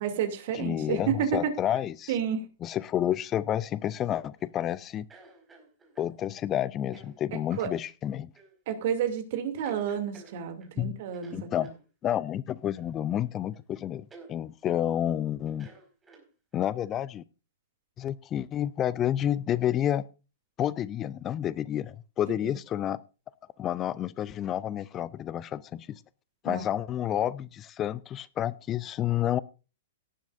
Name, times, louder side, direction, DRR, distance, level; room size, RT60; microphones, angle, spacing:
voice 1, 0.0-1.5 2.1-2.5 7.3-7.7 8.7-11.5 22.4-22.5 26.5-26.7, right 8 dB, 50° right, 7 dB, 2.7 m, -30 dB
voice 2, 0.5-2.1 2.6-5.1 6.0-8.3 10.8-11.0 11.3-11.7 12.0-15.7 16.5-17.2 18.0-20.0 20.6-23.0 23.6-26.0 26.4-29.4, left 11 dB, 25° left, 20 dB, 0.5 m, -30 dB
sound 1, 3.9-4.5 5.1-6.2 6.9-7.1 7.5-7.7 8.3-8.5 9.0-9.2 9.6-10.8 11.1-11.8 12.7-13.3 13.5-13.6 14.1-14.3 14.7-14.8 15.5-16.6, right 3 dB, 15° right, 4.8 m, -53 dB
18.0 x 10.5 x 2.6 m, 0.33 s
figure-of-eight pair, 105°, 0 cm